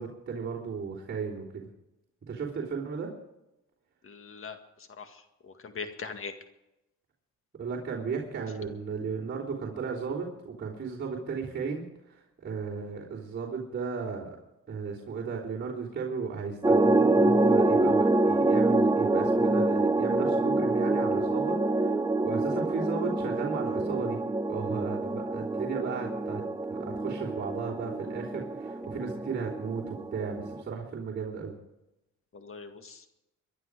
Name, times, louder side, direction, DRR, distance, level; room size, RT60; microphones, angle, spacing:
voice 1, 0.0-1.6 2.3-3.1 7.6-14.4 14.7-24.2 24.5-26.4 26.7-31.6, right 5 dB, 40° right, -6 dB, 3.5 m, -35 dB
voice 2, 4.0-4.6 5.0-6.3 32.3-33.0, left 5 dB, 45° left, 7 dB, 1.9 m, -41 dB
sound 1, 16.6-30.6, right 2 dB, 10° right, 0.7 m, -26 dB
23.5 x 11.0 x 4.9 m, 0.91 s
cardioid pair, 90°, 30 cm